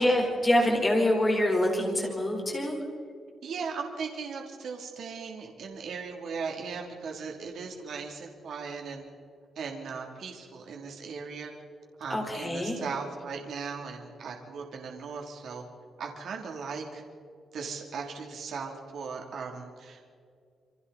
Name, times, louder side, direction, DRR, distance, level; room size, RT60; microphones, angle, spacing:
voice 1, 0.0-2.7 12.1-12.8, left 1 dB, 15° left, 0 dB, 4.2 m, -25 dB
voice 2, 3.4-9.0 9.6-11.5 12.0-15.6 16.0-17.0 17.5-20.1, right 5 dB, 55° right, 1 dB, 2.9 m, -38 dB
28.0 x 24.5 x 4.1 m, 2.3 s
cardioid pair, 180°, 0 cm